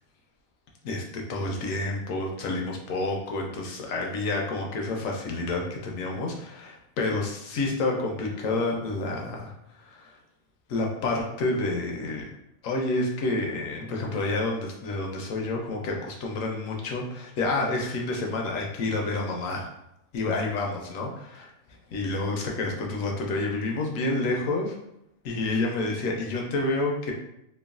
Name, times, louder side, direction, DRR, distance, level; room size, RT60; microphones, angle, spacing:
voice 1, 0.8-9.5 9.8-10.1 10.7-12.3 12.6-19.7 20.1-21.5 21.9-24.8 25.2-27.1, left 2 dB, 70° left, 0 dB, 0.9 m, -29 dB
3.0 x 2.2 x 2.3 m, 0.81 s
omnidirectional pair, 1.5 m